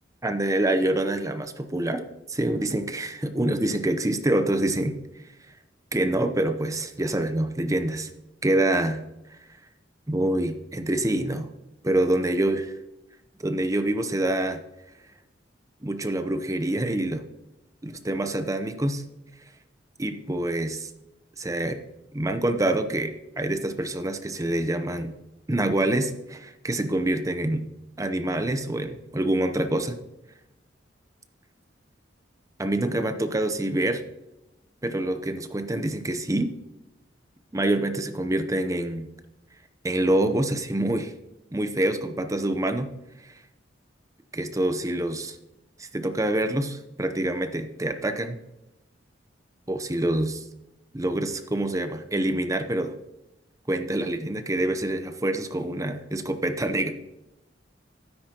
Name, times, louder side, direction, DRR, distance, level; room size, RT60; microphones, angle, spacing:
voice 1, 0.2-4.9 5.9-8.1 8.4-9.0 10.1-11.5 11.8-12.6 13.4-14.6 15.8-17.2 17.8-19.0 20.0-20.9 21.4-21.8 22.1-25.2 25.5-27.6 28.0-30.0 32.6-34.0 34.8-36.5 37.5-39.1 39.8-41.1 41.5-42.9 43.2-43.3 44.3-45.4 45.8-48.4 49.7-50.4 50.9-52.9 53.7-56.9, right 1 dB, 20° right, 8 dB, 0.8 m, -26 dB
12.5 x 9.9 x 3.0 m, 0.91 s
head